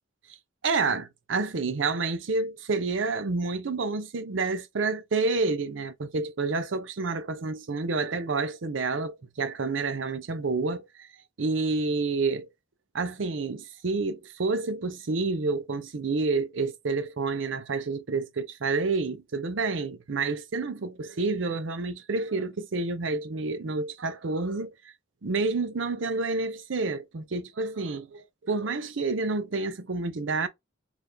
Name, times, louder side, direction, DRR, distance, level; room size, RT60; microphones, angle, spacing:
voice 1, 0.6-11.1 11.4-12.5 12.9-24.7 25.2-30.5, right 3 dB, 70° right, 0.6 m, -29 dB
3.0 x 2.5 x 3.5 m
head